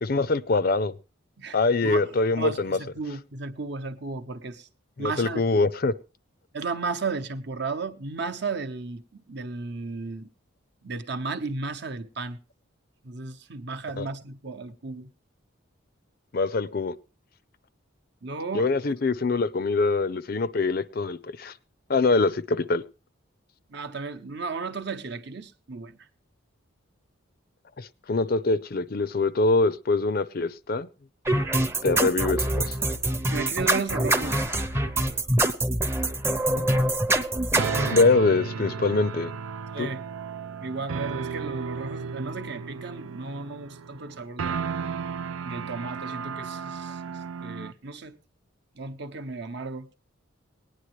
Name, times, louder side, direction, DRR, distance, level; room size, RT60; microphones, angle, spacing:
voice 1, 0.0-0.9 1.5-2.8 5.0-5.9 14.0-14.1 16.3-16.9 18.5-21.5 21.9-22.8 27.8-30.9 31.8-32.8 36.5-36.6 37.8-39.3 39.8-39.9, left 3 dB, 45° left, 0.5 m, -24 dB
voice 2, 1.4-4.7 5.0-5.6 6.5-10.3 10.8-12.4 13.0-15.1 18.2-18.7 23.7-26.0 33.3-34.4 35.1-35.2 39.7-40.0 40.6-44.6 45.4-48.2 48.8-49.9, right 4 dB, 55° right, 0.8 m, -34 dB
sound 1, 31.3-38.0, right 1 dB, 10° right, 0.7 m, -25 dB
sound 2, 37.5-47.7, right 6 dB, 85° right, 0.5 m, -34 dB
19.0 x 10.0 x 3.1 m
head